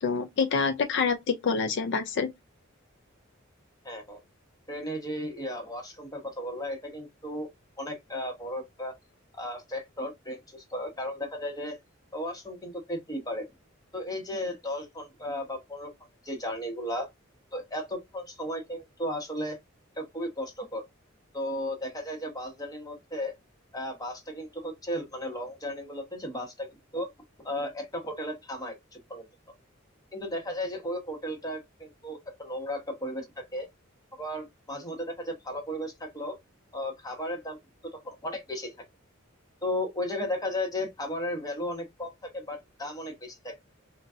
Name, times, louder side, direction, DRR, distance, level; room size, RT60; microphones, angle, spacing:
voice 1, 0.0-2.3, left 5 dB, 60° left, 0.4 m, -27 dB
voice 2, 3.8-4.2 4.7-7.5 7.8-9.0 9.3-11.8 12.1-13.5 13.9-15.9 16.2-17.1 17.5-19.6 19.9-20.8 21.3-23.3 23.7-26.7 26.9-27.1 27.4-29.3 30.1-33.7 34.1-36.4 36.7-37.6 37.9-38.8 39.6-43.5, left 1 dB, 20° left, 1.0 m, -35 dB
3.8 x 2.3 x 2.4 m
head